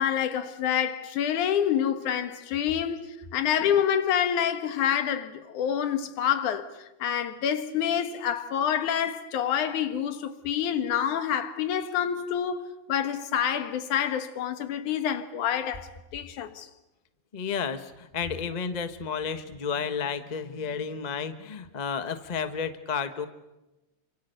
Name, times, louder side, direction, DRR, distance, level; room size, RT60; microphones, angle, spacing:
voice 1, 0.0-16.7, left 9 dB, 85° left, 2.9 m, -27 dB
voice 2, 17.3-23.2, left 6 dB, 65° left, 0.4 m, -32 dB
29.0 x 25.5 x 6.7 m
omnidirectional pair, 3.4 m